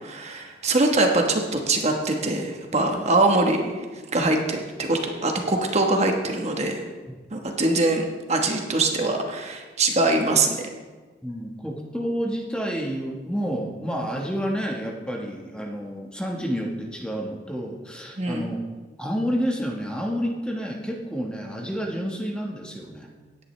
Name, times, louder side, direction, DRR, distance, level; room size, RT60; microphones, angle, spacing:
voice 1, 0.0-3.7 4.1-6.8 7.3-10.6 18.2-18.5, right 2 dB, 40° right, 3 dB, 1.2 m, -23 dB
voice 2, 11.2-18.6 19.0-23.1, equal, 5° left, 0 dB, 1.3 m, -29 dB
17.5 x 10.0 x 3.3 m, 1.3 s
head